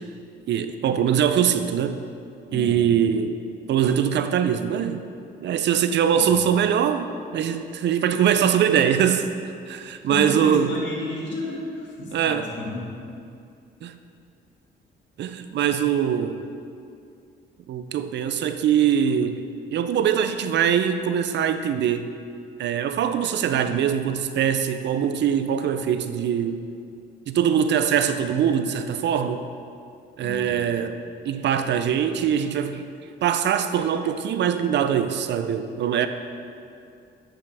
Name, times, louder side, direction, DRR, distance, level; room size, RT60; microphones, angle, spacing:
voice 1, 0.5-2.0 2.5-3.4 3.7-5.0 5.4-9.3 9.7-10.7 12.1-12.4 13.8-13.9 15.2-16.5 17.7-19.4 19.7-22.1 22.6-26.6 27.3-29.5 30.2-31.0 31.2-32.9 33.2-36.1, right 8 dB, 65° right, 9 dB, 0.5 m, -22 dB
voice 2, 2.5-3.0 6.1-6.5 9.8-13.0 30.2-30.7, left 2 dB, 65° left, -4 dB, 2.0 m, -33 dB
10.5 x 5.6 x 3.4 m, 2.5 s
cardioid pair, 90°, 20 cm